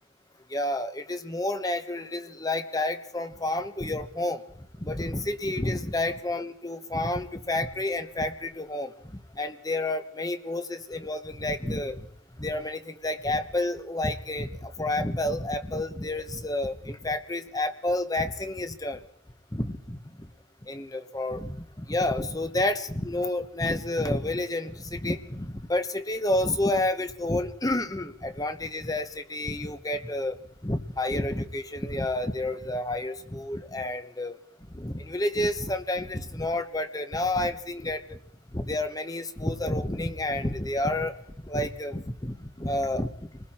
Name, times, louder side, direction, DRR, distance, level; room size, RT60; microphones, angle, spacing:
voice 1, 0.5-4.4 4.8-8.9 9.3-12.1 12.4-19.0 19.5-20.0 20.6-30.4 30.6-34.4 34.7-38.2 38.5-41.1 41.5-43.1, left 1 dB, 20° left, 9 dB, 1.1 m, -30 dB
28.5 x 20.5 x 4.4 m, 0.65 s
head